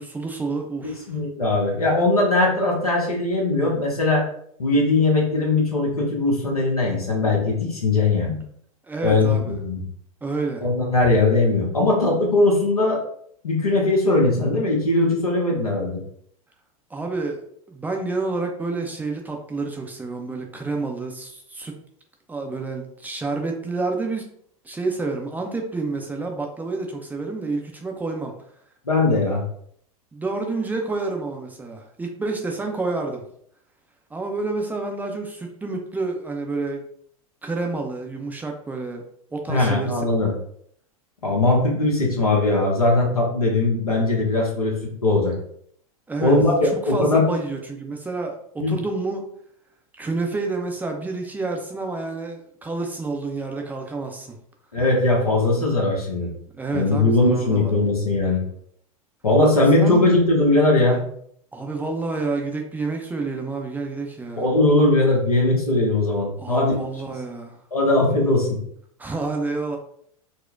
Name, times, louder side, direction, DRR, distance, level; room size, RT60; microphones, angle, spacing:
voice 1, 0.0-1.1 8.9-9.5 10.2-10.7 16.9-21.7 22.3-24.3 24.6-28.3 30.1-33.2 34.1-36.8 37.4-39.0 39.3-40.0 46.1-46.4 46.6-49.3 50.0-54.4 56.6-57.9 59.8-60.1 61.5-64.5 66.4-67.6 69.0-69.8, right 3 dB, 10° right, 2 dB, 0.4 m, -29 dB
voice 2, 1.1-4.2 4.6-8.4 9.0-9.8 10.6-13.0 13.4-16.0 28.9-29.4 39.5-40.3 41.2-45.3 46.2-47.3 48.6-48.7 54.7-56.3 56.7-58.4 59.2-61.0 64.4-66.7 67.7-68.6, left 2 dB, 85° left, -1 dB, 1.0 m, -20 dB
4.2 x 2.1 x 2.3 m, 0.65 s
figure-of-eight pair, 90°, 18 cm